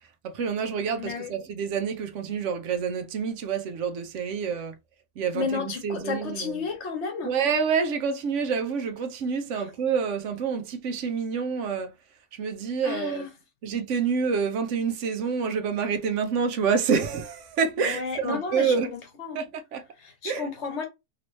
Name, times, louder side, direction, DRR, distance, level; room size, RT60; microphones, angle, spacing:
voice 1, 0.2-4.8 5.2-6.5 7.2-11.9 12.3-13.3 13.6-18.9 19.3-19.8 20.2-20.5, right 6 dB, 75° right, 0.9 m, -27 dB
voice 2, 1.0-1.3 5.3-7.3 9.5-9.7 12.8-13.3 17.8-19.4 20.0-20.8, left 5 dB, 65° left, 1.2 m, -32 dB
3.0 x 2.9 x 3.0 m
omnidirectional pair, 1.3 m